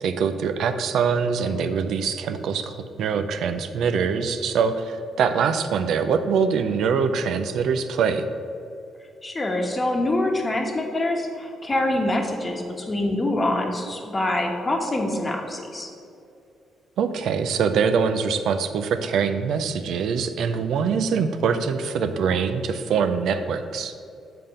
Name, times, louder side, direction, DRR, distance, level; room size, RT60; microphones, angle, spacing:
voice 1, 0.0-8.3 17.0-23.9, right 6 dB, 75° right, 9 dB, 0.4 m, -23 dB
voice 2, 9.2-15.9, left 1 dB, 25° left, 2 dB, 1.1 m, -25 dB
7.6 x 3.6 x 5.5 m, 2.5 s
cardioid pair, 90°, 0 cm